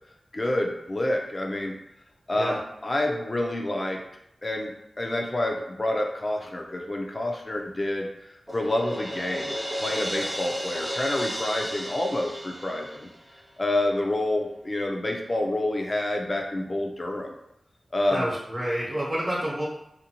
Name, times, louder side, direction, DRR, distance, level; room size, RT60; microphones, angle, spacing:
voice 1, 0.3-1.8 2.3-4.0 4.4-13.1 13.6-17.3 17.9-18.3, left 1 dB, 35° left, 1 dB, 0.4 m, -28 dB
Crash cymbal, 8.5-13.4, equal, 5° right, 0.6 m, -33 dB
voice 2, 18.1-19.7, equal, 40° right, -6 dB, 0.9 m, -28 dB
2.7 x 2.6 x 2.8 m, 0.80 s
wide cardioid pair, 70°, 0 cm